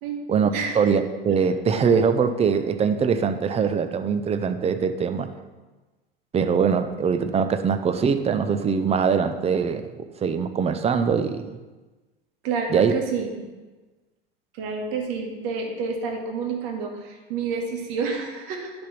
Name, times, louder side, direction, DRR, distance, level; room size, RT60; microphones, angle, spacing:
voice 1, 0.3-5.3 6.3-9.9 10.2-11.6 12.7-12.9, right 6 dB, 20° right, 9 dB, 0.6 m, -22 dB
voice 2, 12.4-13.5 14.5-18.7, right 5 dB, 55° right, 2 dB, 1.5 m, -29 dB
10.5 x 3.5 x 5.8 m, 1.2 s
figure-of-eight pair, 80°, 30 cm